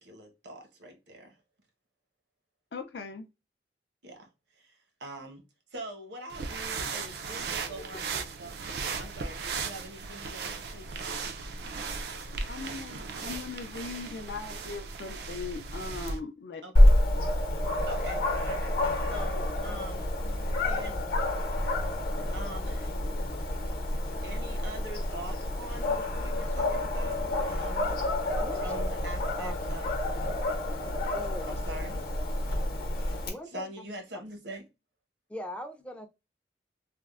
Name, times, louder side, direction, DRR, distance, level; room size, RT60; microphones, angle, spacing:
voice 1, 0.0-1.4 4.0-5.4 5.7-8.7 9.0-11.1 16.6-16.8 17.9-20.1 20.6-21.0 22.3-22.9 24.2-27.9 28.5-29.9 31.5-32.0 33.5-34.7, right 1 dB, 80° right, 0.9 m, -44 dB
voice 2, 2.7-3.2 12.0-16.6, left 4 dB, 70° left, 0.4 m, -40 dB
sound 1, 6.3-16.2, right 4 dB, 60° right, 0.4 m, -37 dB
Dog, 16.7-33.3, left 1 dB, 55° left, 0.8 m, -28 dB
voice 3, 29.4-29.8 31.1-31.6 33.3-33.8 35.3-36.1, equal, 5° left, 0.4 m, -41 dB
3.4 x 2.0 x 2.3 m
head